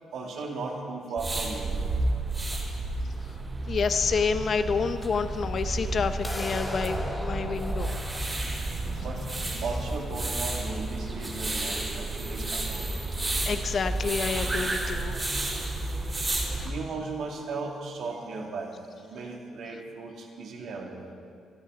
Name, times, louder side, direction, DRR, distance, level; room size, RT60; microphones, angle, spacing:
voice 1, 0.1-2.0 2.5-2.6 9.0-9.3 9.6-12.9 15.3-15.5 16.4-18.8 19.1-21.1, right 3 dB, 70° right, 0 dB, 2.6 m, -36 dB
sound 1, 1.2-16.7, right 2 dB, 25° right, 3.8 m, -31 dB
voice 2, 3.7-7.9 13.5-15.2 16.6-16.7, left 5 dB, 50° left, 9 dB, 0.9 m, -28 dB
sound 2, 6.2-12.2, left 1 dB, 10° left, 3.0 m, -39 dB
21.5 x 13.0 x 4.1 m, 2.3 s
cardioid pair, 90°, 0 cm